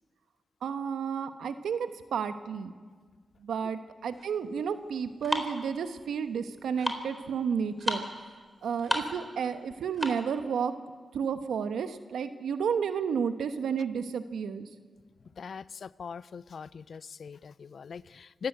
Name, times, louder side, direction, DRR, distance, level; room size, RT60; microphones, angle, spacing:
voice 1, 0.6-2.7 3.4-8.0 8.6-10.7 11.1-14.7, right 7 dB, 85° right, 1.2 m, -31 dB
sound 1, 4.1-10.4, equal, ahead, 4.1 m, -35 dB
voice 2, 15.4-18.5, left 6 dB, 70° left, 0.5 m, -41 dB
26.0 x 13.0 x 8.0 m
supercardioid pair, 45°, 0 cm